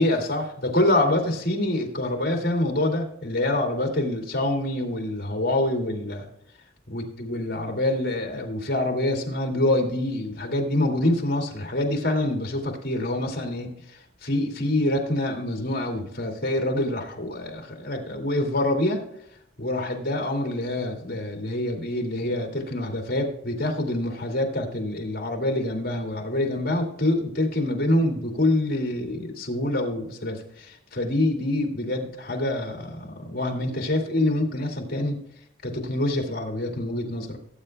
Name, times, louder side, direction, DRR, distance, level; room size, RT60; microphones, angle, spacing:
voice 1, 0.0-6.3 6.9-19.0 19.6-35.2 35.6-37.4, left 1 dB, 55° left, 1 dB, 2.2 m, -26 dB
18.0 x 8.7 x 2.2 m, 0.76 s
head